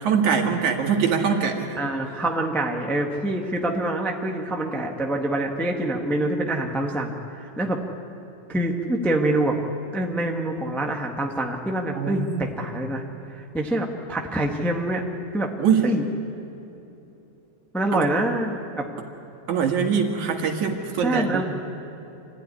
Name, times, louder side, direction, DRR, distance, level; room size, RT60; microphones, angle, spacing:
voice 1, 0.0-1.8 11.9-12.5 15.6-15.9 17.9-18.1 19.5-21.4, right 6 dB, 75° right, 3 dB, 3.1 m, -23 dB
voice 2, 1.8-7.1 7.4-7.8 8.5-9.5 9.9-13.0 13.3-15.0 15.3-15.5 15.8-16.0 17.7-18.8 21.0-21.4, right 1 dB, ahead, 1 dB, 0.7 m, -25 dB
26.0 x 15.0 x 10.0 m, 3.0 s
omnidirectional pair, 3.5 m